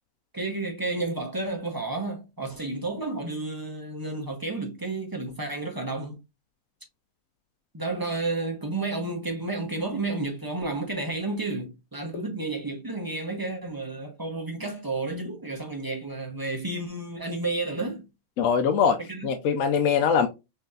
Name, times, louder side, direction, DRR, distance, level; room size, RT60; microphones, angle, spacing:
voice 1, 0.3-6.2 7.7-18.1 19.1-19.3, right 2 dB, 20° right, 0.5 m, -31 dB
voice 2, 18.4-20.3, left 6 dB, 70° left, 0.9 m, -22 dB
5.9 x 2.7 x 2.3 m
omnidirectional pair, 1.6 m